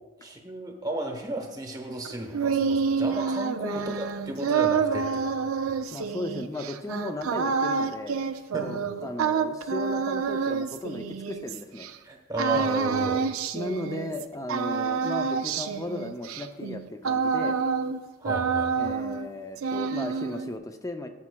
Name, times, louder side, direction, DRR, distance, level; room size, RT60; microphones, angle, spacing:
voice 1, 0.2-5.8 8.5-8.7 12.0-13.3 18.2-18.9, right 1 dB, 20° right, 3 dB, 0.9 m, -33 dB
sound 1, 2.1-11.9 12.4-14.2 14.5-18.0 18.2-19.3 19.6-20.5, right 6 dB, 90° right, 0.5 m, -28 dB
voice 2, 5.9-8.2 8.6-11.9 12.5-12.6 13.5-17.6 18.7-21.1, left 1 dB, 15° left, 6 dB, 0.4 m, -36 dB
13.0 x 7.1 x 2.2 m, 1.2 s
head